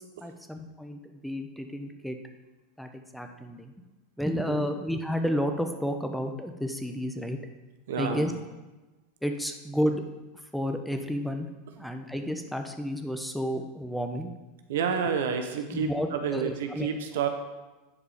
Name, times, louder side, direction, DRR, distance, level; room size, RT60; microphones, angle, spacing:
voice 1, 0.0-2.2 2.8-3.7 4.2-7.4 8.0-8.3 9.2-10.0 10.3-11.5 11.8-14.3 15.7-16.9, equal, ahead, 5 dB, 0.9 m, -31 dB
voice 2, 7.9-8.3 14.7-17.3, right 6 dB, 75° right, 6 dB, 0.9 m, -29 dB
9.7 x 4.8 x 5.0 m, 1.1 s
hypercardioid pair, 90°, 0 cm